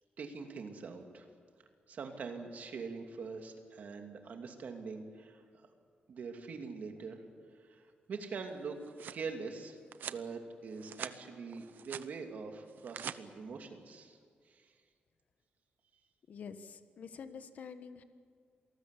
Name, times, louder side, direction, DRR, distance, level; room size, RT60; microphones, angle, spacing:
voice 1, 0.2-1.3 1.9-5.7 6.1-7.2 7.6-8.8 9.1-9.8 10.1-14.2 14.5-14.7, right 5 dB, 55° right, 4 dB, 2.8 m, -43 dB
sound 1, 8.6-9.2 9.9-10.2 10.7-11.2 11.5-12.1 12.7-13.2, right 9 dB, 75° right, 0.8 m, -44 dB
voice 2, 16.3-18.0, left 6 dB, 55° left, 10 dB, 1.4 m, -47 dB
27.5 x 19.5 x 8.4 m, 2.1 s
wide cardioid pair, 170°, 3 cm